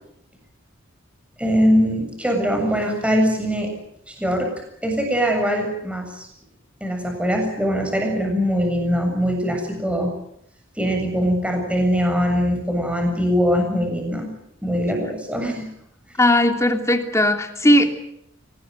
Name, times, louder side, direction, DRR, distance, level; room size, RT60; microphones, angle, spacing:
voice 1, 1.4-3.7 4.1-4.5 4.8-6.3 6.8-10.1 10.8-14.3 14.6-15.7, equal, 5° right, 2 dB, 7.4 m, -22 dB
voice 2, 16.2-17.8, left 1 dB, 15° left, 5 dB, 3.0 m, -17 dB
25.0 x 20.5 x 9.3 m, 0.77 s
head